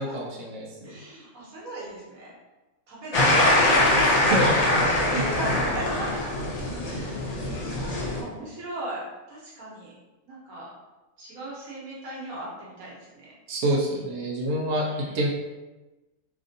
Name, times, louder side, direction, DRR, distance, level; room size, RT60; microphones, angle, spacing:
voice 1, 0.0-0.6 0.9-1.0 4.3-4.5 5.5-5.7 13.5-14.8 15.1-15.3, right 1 dB, 60° right, -3 dB, 0.9 m, -26 dB
voice 2, 0.8-2.3 2.9-3.4 3.6-4.4 4.8-6.1 6.9-10.0 10.2-10.7 11.2-13.3 14.7-15.2, right 2 dB, 80° right, -6 dB, 1.5 m, -37 dB
sound 1, 3.1-8.2, left 1 dB, 65° left, 0.3 m, -23 dB
3.5 x 2.5 x 2.6 m, 1.1 s
omnidirectional pair, 1.5 m